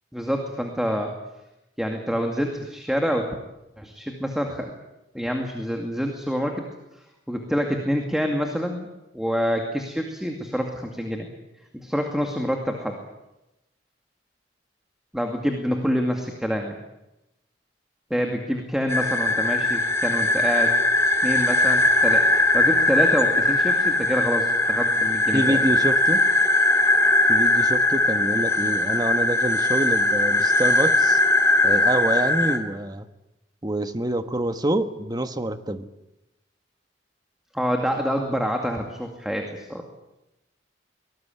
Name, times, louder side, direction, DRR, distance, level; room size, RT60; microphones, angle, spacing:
voice 1, 0.1-1.1 1.8-3.3 3.8-4.7 5.1-6.6 7.3-8.9 9.1-11.3 11.7-13.0 15.1-16.8 18.1-20.7 21.2-25.7 37.5-39.8, equal, 5° right, 3 dB, 2.3 m, -27 dB
sound 1, 18.9-32.6, left 2 dB, 15° left, 3.0 m, -20 dB
voice 2, 25.3-26.3 27.3-31.2 31.6-33.1 33.6-35.9, right 1 dB, 20° right, 9 dB, 1.4 m, -26 dB
24.0 x 19.0 x 9.3 m, 0.95 s
head